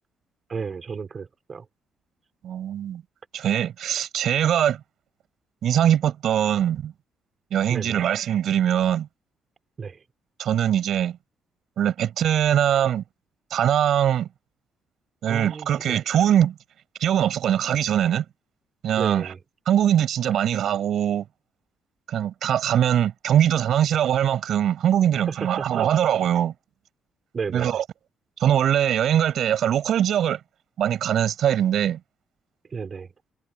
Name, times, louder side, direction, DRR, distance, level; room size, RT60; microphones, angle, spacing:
voice 1, 0.5-1.7 7.7-8.1 9.8-10.0 15.3-16.0 19.0-19.4 25.3-25.9 27.3-27.7 32.7-33.1, right 5 dB, 40° right, 5.5 m, -33 dB
voice 2, 2.4-3.0 3.3-4.8 5.6-6.9 7.5-9.1 10.4-11.2 11.8-13.0 13.5-14.3 15.2-16.5 17.0-18.3 18.8-19.3 19.7-21.2 22.1-26.5 27.5-27.8 28.4-30.4 30.8-32.0, right 10 dB, 70° right, 6.9 m, -22 dB
cardioid pair, 90°, 0 cm